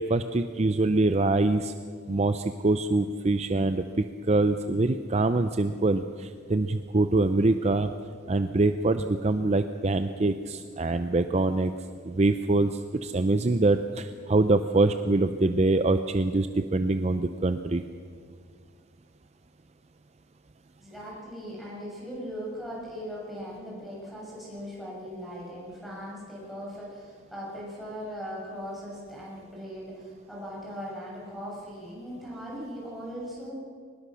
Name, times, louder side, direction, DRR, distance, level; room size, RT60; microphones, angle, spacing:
voice 1, 0.0-1.7 2.1-7.9 8.3-11.7 12.0-17.8, right 2 dB, 35° right, 9 dB, 0.5 m, -24 dB
voice 2, 20.8-33.5, equal, ahead, -6 dB, 7.0 m, -39 dB
22.5 x 20.0 x 6.3 m, 2.1 s
head